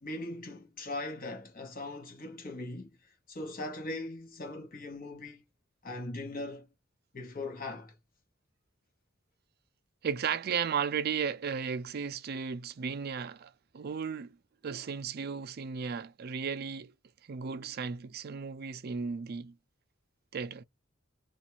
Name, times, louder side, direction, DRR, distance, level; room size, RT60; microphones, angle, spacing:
voice 1, 0.0-2.9 3.3-5.4 5.8-6.7 7.1-7.9, left 2 dB, 45° left, 1.1 m, -40 dB
voice 2, 10.0-14.4 14.6-16.9 17.3-19.5 20.3-20.6, right 6 dB, 50° right, 0.4 m, -35 dB
2.5 x 2.3 x 2.8 m
head